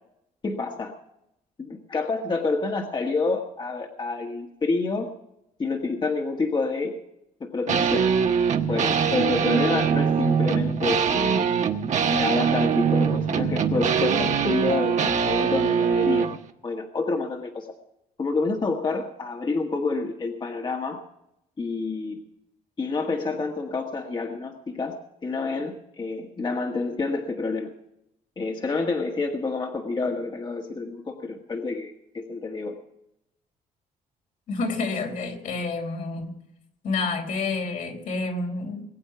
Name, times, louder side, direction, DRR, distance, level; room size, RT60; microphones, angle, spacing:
voice 1, 0.4-0.9 1.6-5.1 5.6-7.0 7.4-8.1 8.7-11.5 12.1-16.3 16.6-17.7 18.2-21.0 21.6-22.2 22.8-25.0 25.2-27.7 28.4-32.8, left 3 dB, 35° left, 2 dB, 1.7 m, -28 dB
sound 1, 7.7-16.4, right 7 dB, 60° right, 1.3 m, -23 dB
voice 2, 34.5-36.3 36.8-38.8, left 3 dB, 70° left, 3 dB, 4.1 m, -29 dB
21.0 x 8.6 x 5.8 m, 0.82 s
cardioid pair, 105°, 14 cm